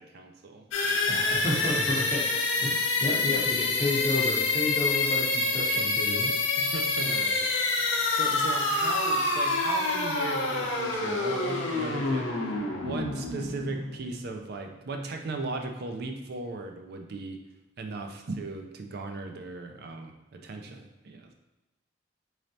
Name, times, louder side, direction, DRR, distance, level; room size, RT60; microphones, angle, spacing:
voice 1, 0.0-1.2 6.6-12.6 12.8-17.4 17.8-21.3, right 3 dB, 55° right, 4 dB, 0.4 m, -37 dB
sound 1, 0.7-14.4, left 3 dB, 80° left, 0.6 m, -27 dB
voice 2, 1.1-2.3 2.6-6.3, left 2 dB, 30° left, -3 dB, 0.8 m, -31 dB
3.9 x 3.2 x 2.7 m, 1.0 s
head